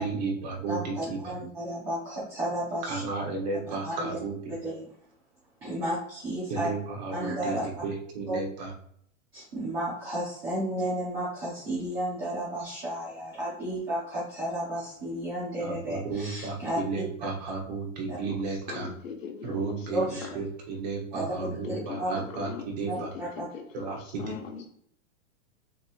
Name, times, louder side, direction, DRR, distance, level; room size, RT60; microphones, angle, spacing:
voice 1, 0.0-0.9 2.9-4.5 6.5-8.7 15.6-18.9 19.4-23.1 23.7-24.4, right 4 dB, 35° right, 0 dB, 1.2 m, -33 dB
voice 2, 0.7-3.0 3.7-4.2 4.5-4.8 5.6-6.7 7.1-7.7 8.3-8.4 9.3-17.0 18.1-18.2 19.9-20.4 21.1-22.1 22.9-23.5, right 1 dB, 10° right, -9 dB, 0.5 m, -33 dB
voice 3, 18.2-20.1 21.4-22.6 22.9-24.7, left 6 dB, 85° left, 2 dB, 1.5 m, -41 dB
6.4 x 3.1 x 2.5 m, 0.68 s
supercardioid pair, 180°, 38 cm